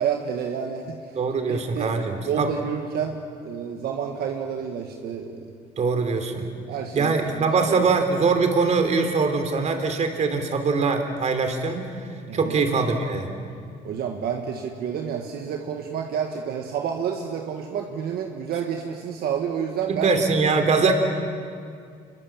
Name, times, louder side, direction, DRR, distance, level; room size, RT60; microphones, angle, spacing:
voice 1, 0.0-1.2 1.5-1.9 2.3-5.3 6.7-7.8 12.3-12.5 13.8-20.1, right 7 dB, 65° right, 3 dB, 1.8 m, -29 dB
voice 2, 1.1-2.5 5.8-6.4 6.9-11.8 12.3-13.3 19.9-20.9, right 4 dB, 40° right, 6 dB, 3.3 m, -22 dB
27.0 x 22.0 x 7.3 m, 2.2 s
cardioid pair, 110°, 17 cm